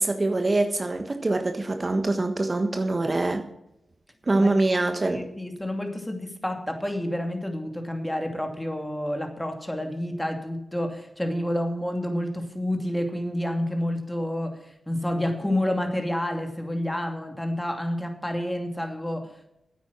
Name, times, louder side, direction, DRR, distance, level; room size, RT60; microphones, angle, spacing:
voice 1, 0.0-3.5 4.3-5.3, right 2 dB, 40° right, 6 dB, 1.3 m, -24 dB
voice 2, 5.1-19.5, left 1 dB, 10° left, 5 dB, 2.6 m, -29 dB
9.8 x 8.5 x 7.3 m, 0.83 s
cardioid pair, 45°, 0 cm